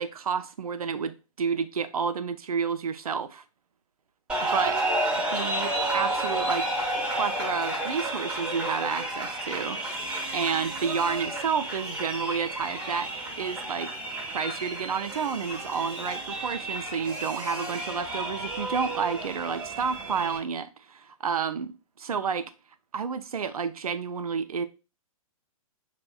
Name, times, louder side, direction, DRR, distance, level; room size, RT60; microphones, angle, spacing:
voice 1, 0.0-3.4 4.5-4.8 5.3-6.7 7.1-9.8 10.3-13.1 13.4-13.9 14.3-22.5 22.9-24.6, right 6 dB, 75° right, 0.4 m, -30 dB
sound 1, 4.3-20.4, right 1 dB, 5° right, 0.5 m, -31 dB
4.0 x 2.1 x 2.2 m
figure-of-eight pair, 120°, 19 cm